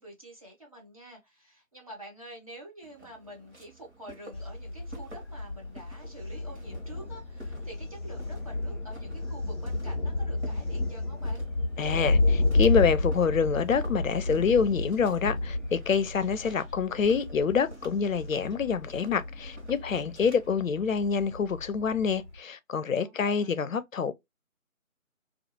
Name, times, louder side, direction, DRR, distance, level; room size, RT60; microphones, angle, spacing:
voice 1, 0.0-11.4 23.0-23.6, right 1 dB, 25° right, 0.7 m, -48 dB
Walk footsteps, 2.8-20.5, right 2 dB, 55° right, 1.1 m, -51 dB
Thunder, 4.3-22.4, left 2 dB, 20° left, 0.8 m, -31 dB
voice 2, 11.8-24.1, left 6 dB, 70° left, 0.5 m, -27 dB
2.3 x 2.3 x 2.8 m
figure-of-eight pair, 155°, 41 cm